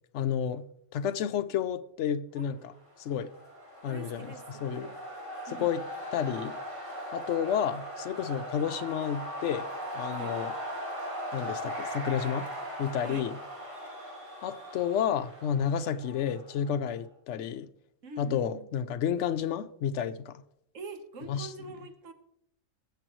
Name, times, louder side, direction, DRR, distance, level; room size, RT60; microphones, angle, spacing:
voice 1, 0.1-2.7 3.0-3.3 3.8-4.9 5.6-5.8 6.1-6.6 7.1-9.7 9.9-10.5 11.3-12.5 12.8-13.4 14.4-17.7 18.2-20.4 21.3-21.5, left 8 dB, 65° left, 0.9 m, -31 dB
voice 2, 2.3-2.8 3.8-5.0 5.5-5.8 10.1-10.4 13.0-13.3 18.0-18.7 20.7-22.1, right 3 dB, 70° right, 1.5 m, -45 dB
sound 1, 2.9-16.7, equal, 25° right, 2.7 m, -39 dB
21.0 x 7.6 x 3.1 m
omnidirectional pair, 1.4 m